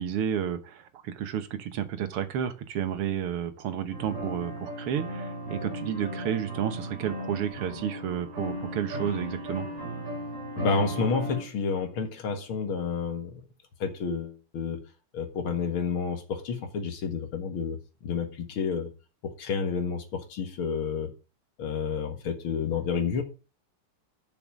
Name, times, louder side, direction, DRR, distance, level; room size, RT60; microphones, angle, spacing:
voice 1, 0.0-9.7, right 9 dB, 90° right, 2.1 m, -31 dB
sound 1, 3.9-11.4, equal, 25° right, 3.9 m, -36 dB
voice 2, 10.6-13.3 13.8-14.8 15.1-18.9 19.2-21.1 21.6-23.2, left 5 dB, 70° left, 2.5 m, -30 dB
7.1 x 6.8 x 7.5 m
omnidirectional pair, 2.4 m